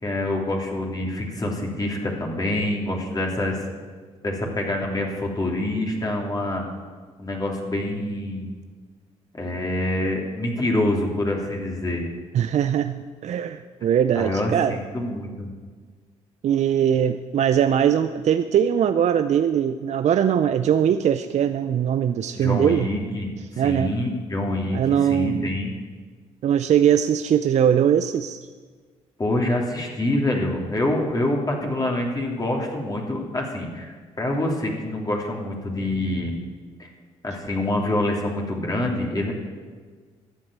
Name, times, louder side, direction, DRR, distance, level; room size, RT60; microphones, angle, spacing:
voice 1, 0.0-3.6 4.2-6.7 7.2-8.5 9.3-12.0 14.1-15.5 22.3-25.7 29.2-36.3 36.8-36.9 37.2-39.3, left 1 dB, 30° left, 0 dB, 3.2 m, -26 dB
voice 2, 12.3-14.8 16.4-22.9 23.6-23.9 24.7-25.5 26.4-28.4, right 9 dB, 60° right, 10 dB, 0.5 m, -21 dB
11.5 x 7.8 x 8.9 m, 1.5 s
supercardioid pair, 65°, 13 cm